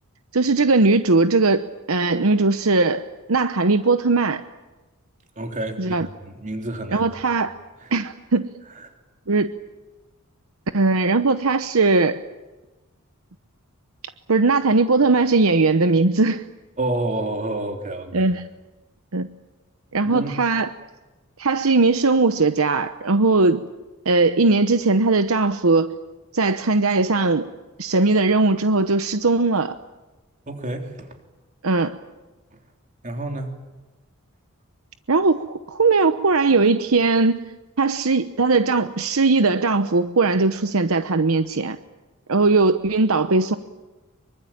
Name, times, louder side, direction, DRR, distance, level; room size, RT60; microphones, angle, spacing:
voice 1, 0.3-4.4 5.8-6.1 6.9-7.6 7.9-8.5 9.3-9.6 10.7-12.2 14.3-16.5 18.1-18.5 19.1-19.3 19.9-20.7 21.4-23.7 24.0-26.0 26.3-27.5 27.8-29.8 31.6-32.0 35.1-37.5 37.8-41.8 42.3-43.6, right 3 dB, 70° right, 10 dB, 0.9 m, -19 dB
voice 2, 5.4-7.1 7.8-7.9 8.8-8.9 16.8-18.3 20.0-20.3 30.5-31.2 32.5-32.6 33.0-33.5, right 2 dB, 35° right, 4 dB, 3.6 m, -29 dB
25.0 x 24.0 x 8.8 m, 1.1 s
head